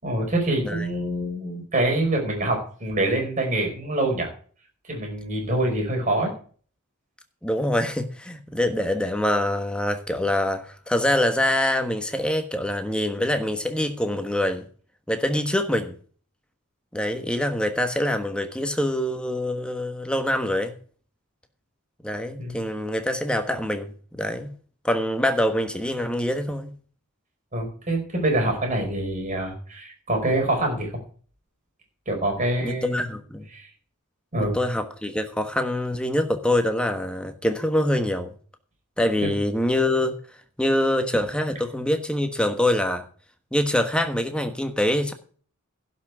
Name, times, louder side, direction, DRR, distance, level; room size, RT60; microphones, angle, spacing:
voice 1, 0.0-4.3 4.9-6.3 22.4-22.6 27.5-30.9 32.1-33.0 33.5-33.7 34.3-34.6 39.2-39.3, right 1 dB, 35° right, 4.7 m, -25 dB
voice 2, 7.4-14.6 15.1-15.9 16.9-20.7 22.0-24.5 24.8-26.7 32.6-33.5 34.4-38.3 39.0-40.2 40.6-43.0 43.5-45.1, left 1 dB, 5° left, 1.3 m, -25 dB
11.5 x 6.1 x 7.9 m
head